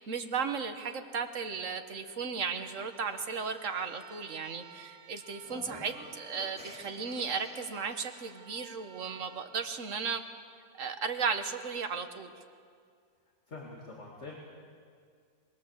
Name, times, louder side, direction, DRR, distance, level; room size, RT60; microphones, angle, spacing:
voice 1, 0.0-10.2 10.8-12.3, right 5 dB, 50° right, 7 dB, 1.6 m, -35 dB
sound 1, 2.3-10.5, right 5 dB, 90° right, 2.1 m, -55 dB
sound 2, 5.4-8.4, equal, 5° right, 2.3 m, -50 dB
voice 2, 13.5-14.3, left 3 dB, 40° left, -2 dB, 2.8 m, -45 dB
25.5 x 21.0 x 7.3 m, 2.1 s
omnidirectional pair, 1.8 m